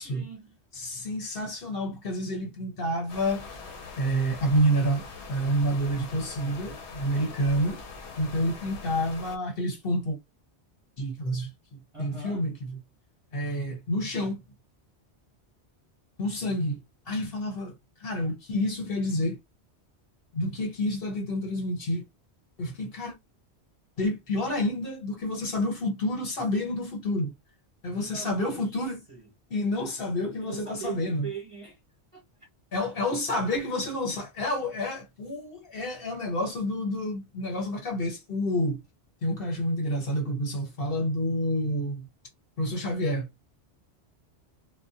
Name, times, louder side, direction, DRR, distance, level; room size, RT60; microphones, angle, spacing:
voice 1, 0.0-0.6 11.9-12.4 28.0-28.8 29.1-29.3 30.4-31.8 32.1-32.2, right 6 dB, 35° right, 0.7 m, -40 dB
voice 2, 0.7-3.5 4.0-5.0 5.3-7.8 8.1-10.2 11.0-11.5 12.0-12.8 13.3-14.4 16.2-16.8 17.1-17.7 18.0-19.4 20.3-22.0 22.6-23.1 24.0-27.3 27.8-29.0 29.5-31.2 32.7-38.8 39.2-42.1 42.6-43.3, equal, 60° left, 1.2 m, -29 dB
sound 1, 3.1-9.4, left 4 dB, 80° left, 0.9 m, -43 dB
2.2 x 2.1 x 2.7 m
omnidirectional pair, 1.1 m